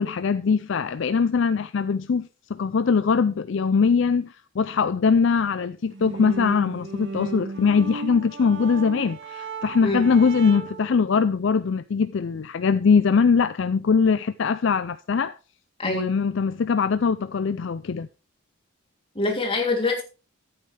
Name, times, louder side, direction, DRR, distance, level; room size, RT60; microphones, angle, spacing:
voice 1, 0.0-15.3 15.8-18.1, left 5 dB, 60° left, 0.4 m, -22 dB
sound 1, 5.9-10.9, right 4 dB, 55° right, 1.6 m, -35 dB
voice 2, 19.1-20.0, left 2 dB, 25° left, 3.0 m, -24 dB
14.0 x 8.8 x 3.3 m
head